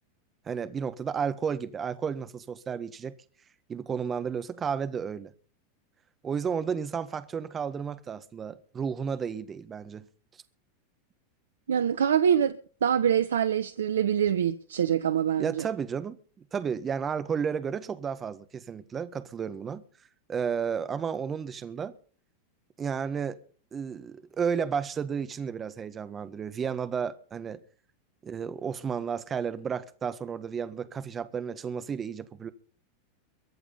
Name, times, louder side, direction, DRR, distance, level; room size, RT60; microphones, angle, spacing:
voice 1, 0.5-3.2 3.7-5.3 6.2-10.0 15.4-16.2 16.5-19.8 20.3-21.9 22.8-23.4 23.7-27.6 28.2-32.5, right 6 dB, 25° right, 1.7 m, -32 dB
voice 2, 11.7-12.6 12.8-15.7, right 8 dB, 80° right, 0.8 m, -25 dB
23.0 x 8.1 x 5.7 m
hypercardioid pair, 95°, 0 cm